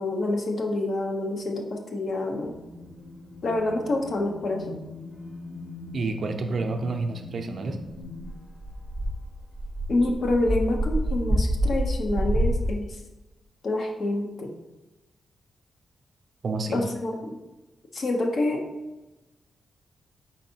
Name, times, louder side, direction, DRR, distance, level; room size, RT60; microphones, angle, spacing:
voice 1, 0.0-2.5 3.4-4.8 9.9-12.9 13.6-14.5 16.7-17.4 17.9-18.6, left 2 dB, 60° left, 2 dB, 0.7 m, -27 dB
sound 1, 2.4-8.3, left 2 dB, 40° left, 1.2 m, -42 dB
voice 2, 5.9-7.8 16.4-16.8, right 3 dB, 55° right, 5 dB, 0.5 m, -29 dB
sound 2, 7.9-12.7, right 1 dB, 5° right, 0.6 m, -27 dB
4.4 x 3.9 x 2.8 m, 1.0 s
cardioid pair, 85°, 0 cm